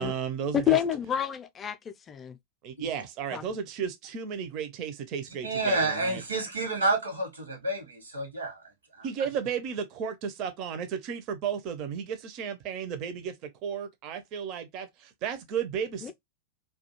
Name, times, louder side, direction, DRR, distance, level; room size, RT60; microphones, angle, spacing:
voice 1, 0.0-0.8 2.6-6.2 9.0-16.1, right 7 dB, 40° right, 0.4 m, -34 dB
voice 2, 0.5-1.8 2.1-2.4 3.3-3.4 16.0-16.1, left 10 dB, 20° left, 0.3 m, -28 dB
voice 3, 5.4-8.6 9.0-9.1, right 2 dB, 80° right, 0.9 m, -29 dB
2.3 x 2.2 x 2.7 m
figure-of-eight pair, 90°, 0 cm